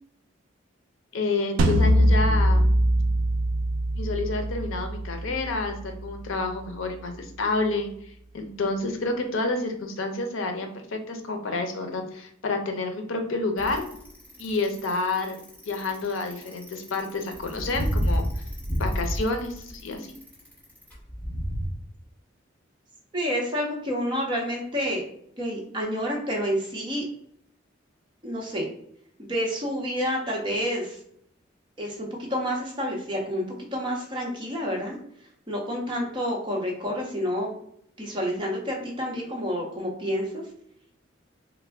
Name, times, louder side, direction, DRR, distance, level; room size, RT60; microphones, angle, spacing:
voice 1, 1.1-2.7 3.9-7.9 8.3-13.8 14.4-15.4 15.7-18.2 18.8-20.1, left 3 dB, 85° left, 5 dB, 0.6 m, -29 dB
sound 1, 1.6-6.7, equal, 75° right, 0.4 m, -23 dB
Bicycle, 13.6-21.7, equal, 10° left, 1.0 m, -30 dB
voice 2, 23.1-25.0 25.4-27.0 28.2-28.7 29.2-31.0 31.8-35.0 35.5-37.6 38.0-40.4, equal, 25° right, -1 dB, 0.7 m, -29 dB
3.4 x 2.1 x 3.3 m, 0.69 s
head